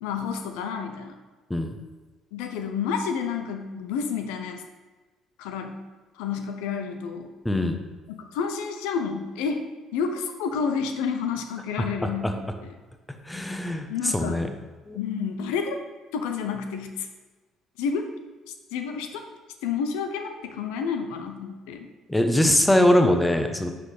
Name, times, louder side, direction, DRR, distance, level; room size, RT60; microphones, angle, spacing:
voice 1, 0.0-1.2 2.3-4.6 5.4-5.8 6.1-7.3 8.2-9.6 9.9-12.7 13.9-14.5 14.9-15.8 16.1-17.1 17.8-18.1 18.7-19.2 19.6-21.9, left 6 dB, 85° left, 6 dB, 0.6 m, -30 dB
voice 2, 7.4-7.8 13.3-13.9 14.1-14.5 14.9-15.0 22.1-23.7, left 1 dB, 10° left, 6 dB, 0.9 m, -21 dB
10.5 x 4.2 x 3.3 m, 1.2 s
supercardioid pair, 70°, 0 cm